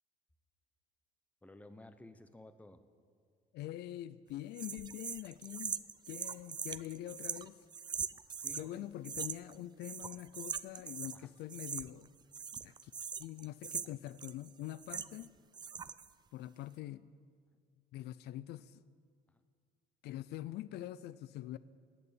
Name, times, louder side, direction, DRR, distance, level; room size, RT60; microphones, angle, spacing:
voice 1, 1.4-2.8 8.4-9.2 10.2-10.3 11.1-11.3 15.1-15.2 15.7-15.9 19.3-19.4, left 1 dB, 10° left, 0.9 m, -55 dB
voice 2, 3.5-5.8 6.1-7.6 8.5-12.1 12.6-12.9 13.2-15.3 16.3-17.1 17.9-18.8 20.0-21.6, left 13 dB, 75° left, 0.4 m, -44 dB
sound 1, 4.6-8.7 9.0-9.6 9.8-11.2 11.5-12.1 12.3-15.3 15.5-16.1, right 6 dB, 25° right, 0.4 m, -42 dB
19.5 x 6.9 x 8.8 m
cardioid pair, 110°, 17 cm